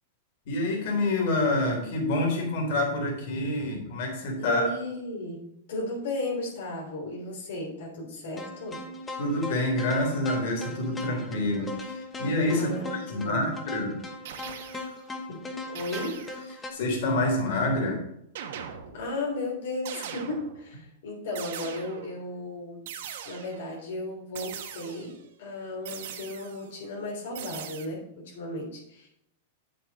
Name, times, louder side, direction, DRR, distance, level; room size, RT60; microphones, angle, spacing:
voice 1, 0.5-4.7 9.2-14.0 16.7-18.0, left 1 dB, 60° left, 0 dB, 3.5 m, -27 dB
voice 2, 4.3-8.8 12.5-13.4 15.7-16.2 18.9-22.9 23.2-29.1, left 1 dB, 80° left, -2 dB, 3.2 m, -35 dB
sound 1, 8.4-16.7, left 2 dB, 15° left, 1.1 m, -39 dB
sound 2, 14.2-15.0 15.7-16.5 18.3-19.2 19.8-20.7 21.3-22.2 22.9-23.7 24.3-25.2 25.8-26.7 27.3-27.9, right 8 dB, 65° right, 1.2 m, -41 dB
8.5 x 7.7 x 4.2 m, 0.77 s
supercardioid pair, 155°, 0 cm